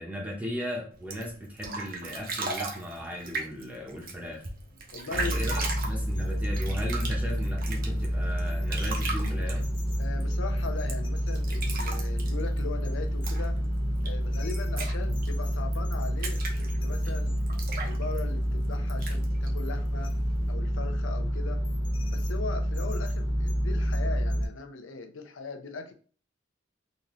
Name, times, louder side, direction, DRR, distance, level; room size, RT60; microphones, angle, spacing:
voice 1, 0.0-4.4 5.1-9.7, equal, 10° right, -2 dB, 0.8 m, -37 dB
sound 1, 0.9-20.5, right 3 dB, 50° right, 0.8 m, -39 dB
voice 2, 4.9-5.7 10.0-13.6 14.0-17.3 17.8-20.1 20.5-21.6 22.1-25.9, left 4 dB, 85° left, 6 dB, 0.6 m, -39 dB
sound 2, 5.1-24.5, equal, 25° left, 0.5 m, -29 dB
4.0 x 2.6 x 3.1 m, 0.41 s
head